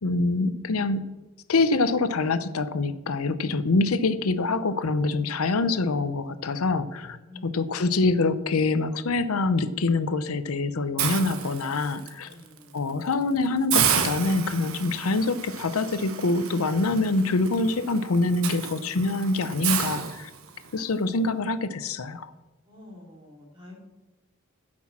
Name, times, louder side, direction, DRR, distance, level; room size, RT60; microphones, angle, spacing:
voice 1, 0.0-1.0 1.5-7.2 7.4-12.3 12.7-20.3 20.7-22.3, left 3 dB, 80° left, 13 dB, 0.7 m, -25 dB
voice 2, 7.3-7.8 12.2-12.8 22.7-23.8, left 2 dB, 20° right, -2 dB, 3.0 m, -47 dB
Hiss, 11.0-12.1 12.6-12.8 13.1-13.2 13.7-20.8, right 8 dB, 70° right, 1.1 m, -31 dB
10.5 x 6.1 x 7.3 m, 1.0 s
head